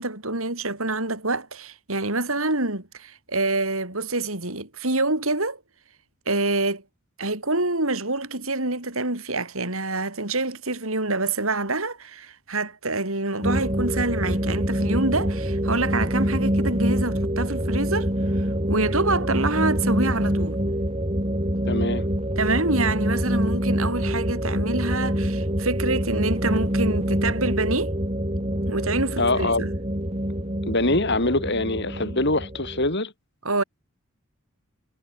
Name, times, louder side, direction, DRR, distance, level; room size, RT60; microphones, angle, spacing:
voice 1, 0.0-5.6 6.3-6.8 7.2-20.6 22.4-27.9 28.7-29.7 33.4-33.6, right 2 dB, 70° right, 6.4 m, -26 dB
sound 1, 13.4-32.9, equal, 25° right, 7.0 m, -25 dB
voice 2, 21.7-22.0 29.2-29.7 30.7-33.1, left 2 dB, 50° left, 4.9 m, -23 dB
head